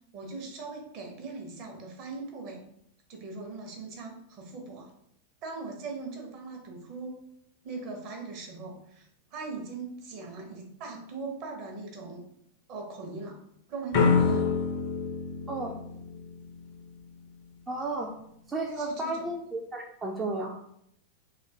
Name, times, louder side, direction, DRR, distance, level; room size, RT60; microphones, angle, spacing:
voice 1, 0.1-2.6 3.1-4.9 5.4-7.2 7.6-12.2 12.7-13.4 13.7-14.5 18.7-19.3, right 3 dB, 40° right, 1 dB, 0.7 m, -40 dB
sound 1, 13.9-16.8, left 5 dB, 50° left, 0.5 m, -27 dB
voice 2, 17.7-18.1 18.5-20.6, right 2 dB, 15° right, -1 dB, 0.3 m, -33 dB
2.5 x 2.4 x 3.2 m, 0.72 s
figure-of-eight pair, 90°, 0 cm